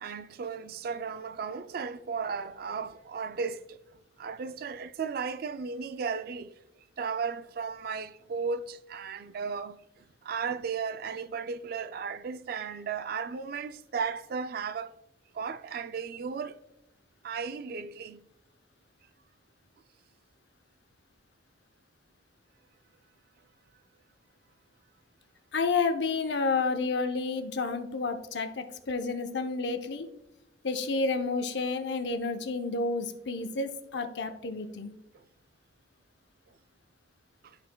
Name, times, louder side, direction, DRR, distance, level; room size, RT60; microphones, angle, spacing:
voice 1, 0.0-3.8 4.2-6.5 7.0-14.9 15.3-16.6 17.2-18.3 35.1-35.3 37.4-37.6, right 5 dB, 55° right, 0.3 m, -35 dB
voice 2, 25.5-30.1 30.6-34.9, left 4 dB, 65° left, 0.7 m, -30 dB
13.0 x 4.4 x 2.2 m
head